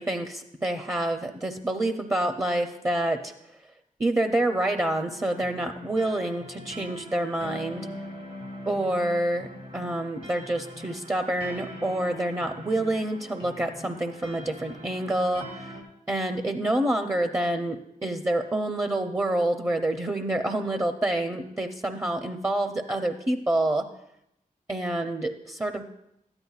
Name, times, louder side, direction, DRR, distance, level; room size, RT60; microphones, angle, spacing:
voice 1, 0.0-3.3 4.0-7.9 8.7-9.5 9.7-15.7 16.1-23.9 24.7-25.9, right 1 dB, 20° right, 5 dB, 0.6 m, -27 dB
sound 1, 5.1-15.8, equal, 70° right, 2.2 m, -42 dB
13.0 x 9.7 x 2.4 m, 0.79 s
cardioid pair, 60°, 15 cm